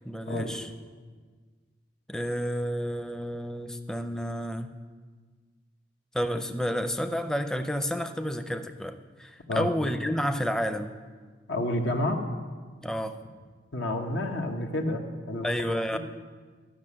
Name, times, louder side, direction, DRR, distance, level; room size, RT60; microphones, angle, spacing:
voice 1, 0.0-0.7 2.1-4.7 6.1-11.0 12.8-13.2 15.4-16.0, equal, 5° left, 8 dB, 0.5 m, -30 dB
voice 2, 11.5-12.2 13.7-16.0, left 1 dB, 85° left, 2 dB, 1.3 m, -30 dB
13.0 x 6.3 x 8.5 m, 1.5 s
head